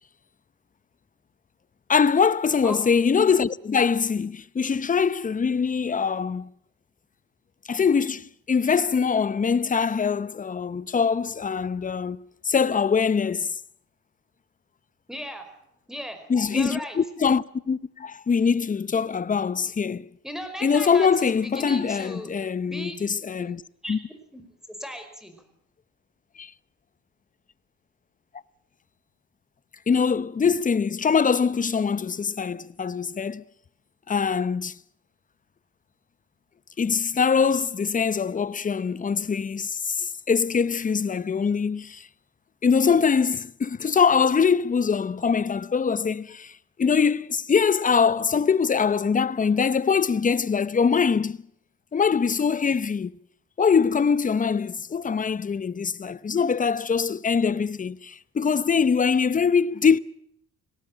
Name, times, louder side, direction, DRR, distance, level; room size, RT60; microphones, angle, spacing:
voice 1, 1.9-6.5 7.7-12.2 12.4-13.5 16.3-20.1 20.6-23.6 23.9-24.0 26.4-26.5 29.9-33.4 34.1-34.7 36.8-42.1 42.6-51.4 51.9-53.1 53.6-60.0, left 6 dB, 25° left, 0.7 m, -23 dB
voice 2, 15.1-15.5 15.9-16.2 16.5-17.0 20.2-22.3 22.6-22.9 23.8-24.4 24.8-25.4, equal, ahead, 5.0 m, -36 dB
19.0 x 18.0 x 8.8 m
cardioid pair, 90°, 30 cm